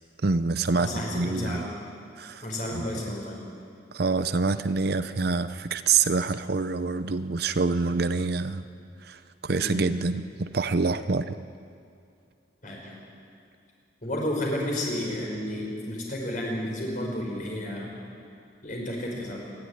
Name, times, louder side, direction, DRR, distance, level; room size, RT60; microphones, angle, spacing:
voice 1, 0.2-1.7 2.2-2.4 2.7-2.9 3.9-8.6 9.0-11.4, right 4 dB, 55° right, 12 dB, 0.6 m, -26 dB
voice 2, 0.8-1.6 2.4-3.4 9.5-9.8 12.6-12.9 14.0-17.9 18.6-19.4, left 1 dB, 45° left, -2 dB, 5.8 m, -31 dB
27.5 x 12.0 x 9.8 m, 2.5 s
head